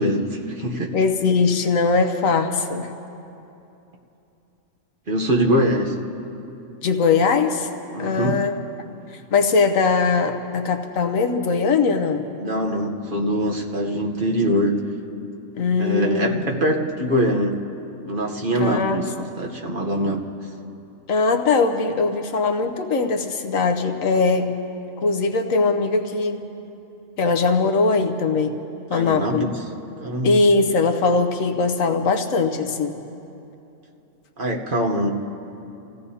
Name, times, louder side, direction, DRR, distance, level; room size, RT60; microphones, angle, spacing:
voice 1, 0.0-0.9 5.1-6.0 7.9-8.4 12.4-14.8 15.8-17.6 18.1-20.2 28.9-29.6 30.0-30.3 34.4-35.1, equal, 45° right, 1 dB, 1.1 m, -23 dB
voice 2, 0.9-2.9 6.8-7.7 8.0-8.6 9.3-12.3 15.5-16.4 18.6-19.3 21.1-24.6 25.0-26.5 27.2-28.6 28.9-29.5 30.2-33.0, left 4 dB, 85° left, 6 dB, 1.3 m, -21 dB
29.5 x 16.5 x 2.8 m, 2.8 s
omnidirectional pair, 1.3 m